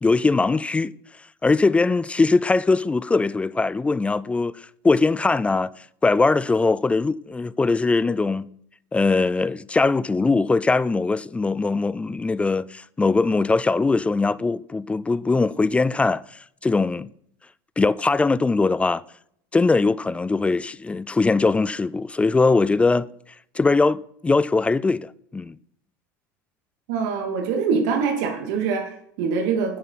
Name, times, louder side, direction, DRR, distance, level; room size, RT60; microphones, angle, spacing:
voice 1, 0.0-0.9 1.4-4.6 4.8-5.7 6.0-8.5 8.9-17.1 17.8-19.0 19.5-23.1 23.5-25.6, left 3 dB, 10° left, 0.3 m, -21 dB
voice 2, 26.9-29.8, right 5 dB, 65° right, 2.6 m, -24 dB
9.3 x 9.3 x 4.2 m
hypercardioid pair, 95°, 10 cm